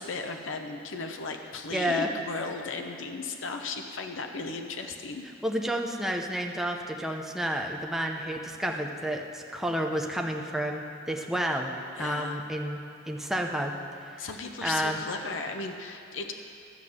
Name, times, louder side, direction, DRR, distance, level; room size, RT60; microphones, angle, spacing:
voice 1, 0.0-5.2 12.0-12.4 14.2-16.3, left 3 dB, 75° left, 5 dB, 0.8 m, -36 dB
voice 2, 1.7-2.1 5.4-11.7 12.0-12.8 13.1-13.7 14.1-14.3 14.6-15.0, equal, ahead, 1 dB, 0.7 m, -30 dB
12.5 x 5.7 x 7.8 m, 2.7 s
head